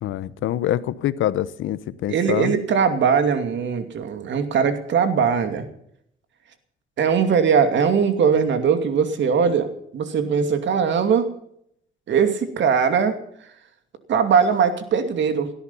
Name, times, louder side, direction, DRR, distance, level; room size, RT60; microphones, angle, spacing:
voice 1, 0.0-2.5, left 12 dB, 80° left, 16 dB, 1.0 m, -25 dB
voice 2, 2.1-5.6 7.0-11.3 12.1-13.2 14.1-15.5, right 6 dB, 65° right, 8 dB, 2.6 m, -20 dB
17.5 x 13.0 x 5.6 m, 0.70 s
cardioid pair, 90°, 20 cm